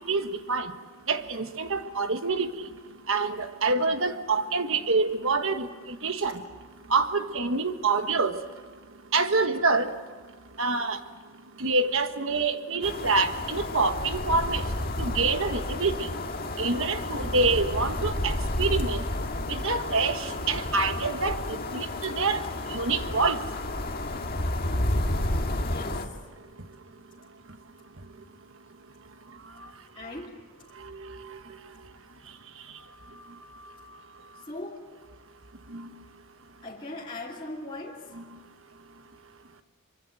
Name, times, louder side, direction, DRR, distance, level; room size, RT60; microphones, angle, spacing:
voice 1, 0.1-0.7 1.1-2.7 3.1-6.4 6.9-8.3 9.1-9.9 10.6-11.0 11.6-14.6 15.0-16.1 16.6-19.0 19.5-22.4 22.7-23.4 30.9-31.1 35.7-35.8, right 3 dB, 60° right, 8 dB, 1.5 m, -26 dB
sound 1, 12.8-26.1, left 1 dB, 40° left, 1.8 m, -31 dB
voice 2, 25.6-26.2 29.9-30.4 34.3-34.9 36.6-38.1, left 2 dB, 20° left, -5 dB, 2.7 m, -39 dB
25.0 x 24.0 x 7.8 m, 1.4 s
head